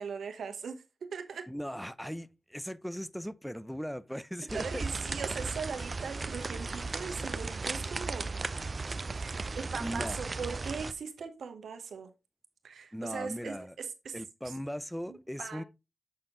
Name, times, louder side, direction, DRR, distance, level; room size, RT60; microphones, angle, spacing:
voice 1, 0.0-1.5 4.5-8.3 9.1-12.1 12.6-14.2 14.4-14.5 15.1-15.6, right 6 dB, 85° right, 1.1 m, -40 dB
voice 2, 1.5-4.9 9.8-10.2 12.9-13.7 14.1-15.6, equal, ahead, 0.6 m, -38 dB
sound 1, 4.5-10.9, right 3 dB, 50° right, 0.6 m, -36 dB
7.5 x 4.4 x 3.7 m
cardioid pair, 40°, 0 cm